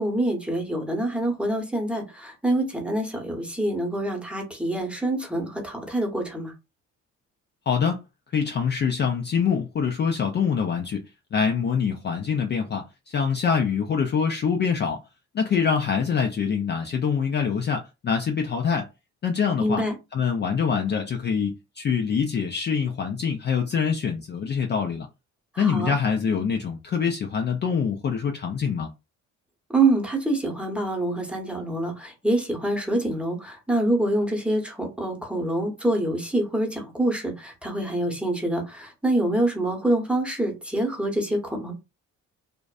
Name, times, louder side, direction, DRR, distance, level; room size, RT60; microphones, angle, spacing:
voice 1, 0.0-6.5 19.6-19.9 25.5-25.9 29.7-41.7, right 1 dB, 5° right, 0.9 m, -26 dB
voice 2, 7.7-8.0 8.3-11.0 11.3-15.0 15.3-18.9 19.2-19.8 20.1-25.1 25.6-28.9, left 6 dB, 35° left, 0.4 m, -25 dB
2.5 x 2.1 x 2.3 m
cardioid pair, 90°, 30 cm